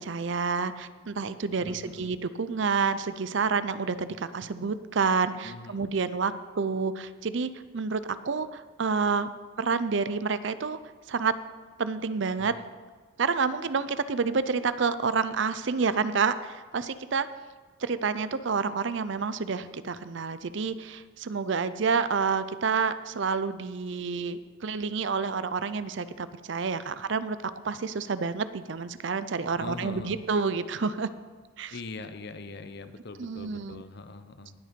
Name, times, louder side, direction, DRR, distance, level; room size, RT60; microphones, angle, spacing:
voice 1, 0.0-9.3 9.6-10.8 11.1-11.3 11.8-12.5 13.2-17.3 17.8-31.1 31.6-31.7 33.2-33.8, right 5 dB, 60° right, 14 dB, 0.5 m, -29 dB
voice 2, 1.6-2.1 5.4-5.8 12.4-12.7 16.8-16.9 29.6-30.2 31.7-34.5, left 3 dB, 50° left, 10 dB, 0.8 m, -42 dB
18.5 x 6.6 x 5.2 m, 1.5 s
head